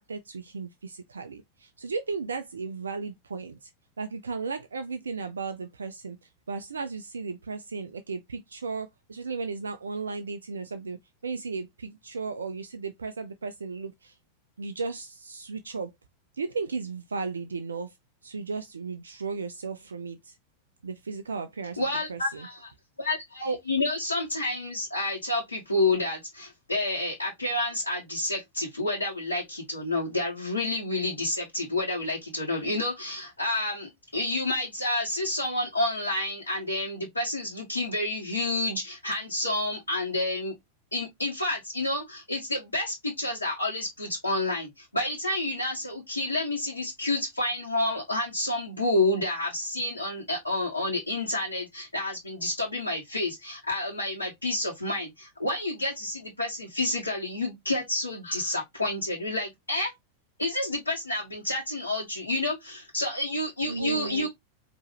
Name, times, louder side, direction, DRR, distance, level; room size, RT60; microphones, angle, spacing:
voice 1, 0.0-3.7 4.0-11.0 11.2-14.2 14.6-15.9 16.3-17.9 18.2-20.3 20.8-21.8 22.1-22.5 63.7-64.3, right 4 dB, 70° right, 0.4 m, -35 dB
voice 2, 21.8-22.7 23.0-40.5 40.9-59.9 60.4-64.3, left 2 dB, 80° left, 1.3 m, -29 dB
4.4 x 3.0 x 2.9 m
figure-of-eight pair, 90°, 0 cm